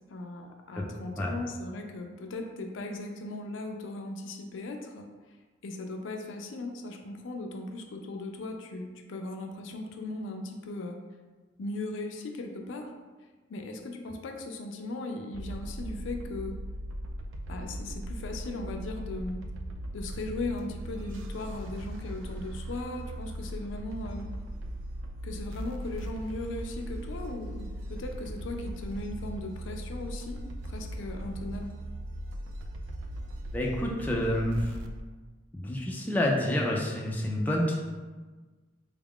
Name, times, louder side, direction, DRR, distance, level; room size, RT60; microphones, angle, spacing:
voice 1, 0.1-5.1 5.6-11.0 11.6-12.9 13.5-16.6 17.5-19.4 19.9-24.3 25.2-31.7, left 2 dB, 75° left, 4 dB, 0.4 m, -38 dB
sound 1, 15.3-35.0, right 1 dB, 80° right, 0.3 m, -38 dB
voice 2, 33.5-34.8 35.5-37.8, left 1 dB, 10° left, -2 dB, 0.3 m, -28 dB
3.5 x 2.4 x 3.5 m, 1.3 s
head